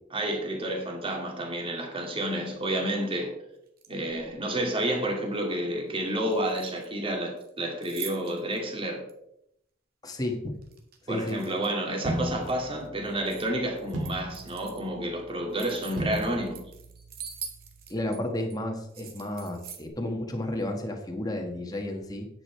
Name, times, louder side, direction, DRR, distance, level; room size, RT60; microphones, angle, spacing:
voice 1, 0.1-3.3 3.9-9.0 11.1-16.6, right 1 dB, 30° right, 1 dB, 2.5 m, -30 dB
sound 1, 3.7-4.4 6.3-7.1 7.4-8.6 9.1-9.2 10.6-11.8 12.2-13.5 13.8-14.9 15.3-18.2 18.5-18.6 18.9-19.9, right 7 dB, 50° right, 1.8 m, -44 dB
voice 2, 10.0-10.5 11.0-11.4 17.9-22.3, left 1 dB, 20° left, 2 dB, 1.5 m, -32 dB
sound 2, 12.0-18.1, equal, 85° right, 2.6 m, -38 dB
9.9 x 8.3 x 4.6 m, 0.78 s
head